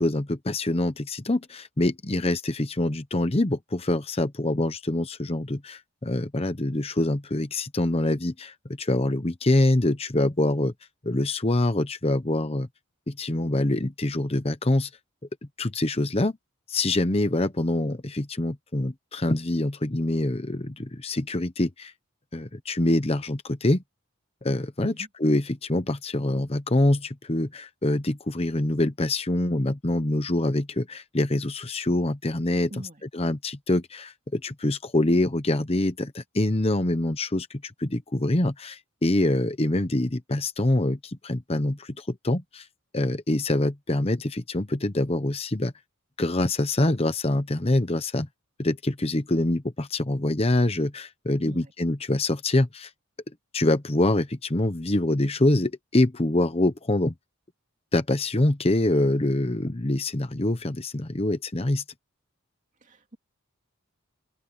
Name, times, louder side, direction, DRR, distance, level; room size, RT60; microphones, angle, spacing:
voice 1, 0.0-10.7 11.0-12.7 13.1-14.9 15.6-16.3 16.7-21.9 22.3-23.8 24.4-24.9 25.2-32.7 33.1-42.6 42.9-45.7 46.2-48.3 48.6-52.9 53.5-57.1 57.9-61.8, left 1 dB, 30° left, 0.9 m, -25 dB
voice 2, 32.7-33.0 51.4-51.7 62.8-63.2, right 1 dB, 35° right, 2.6 m, -43 dB
head